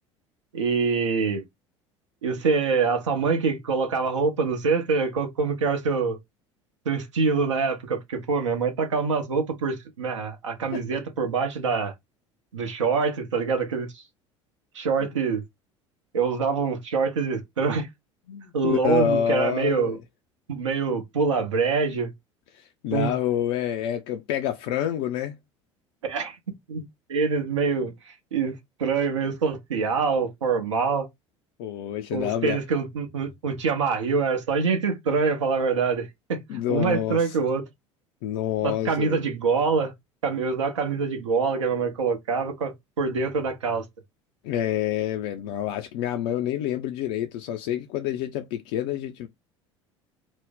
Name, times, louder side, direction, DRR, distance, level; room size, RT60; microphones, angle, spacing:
voice 1, 0.5-1.4 2.2-6.2 6.9-11.9 12.5-13.9 14.7-15.4 16.1-17.9 18.5-20.0 20.5-22.1 22.9-23.1 26.1-26.4 26.7-26.8 27.1-27.9 28.3-31.1 32.1-36.4 36.7-37.6 38.6-39.9 40.2-42.7 43.0-43.8, right 5 dB, 75° right, 0.7 m, -25 dB
voice 2, 18.3-20.0 22.5-25.4 31.6-32.6 36.5-37.4 38.2-39.2 44.4-49.3, left 10 dB, 55° left, 0.4 m, -28 dB
2.6 x 2.0 x 3.5 m
figure-of-eight pair, 65°, 16 cm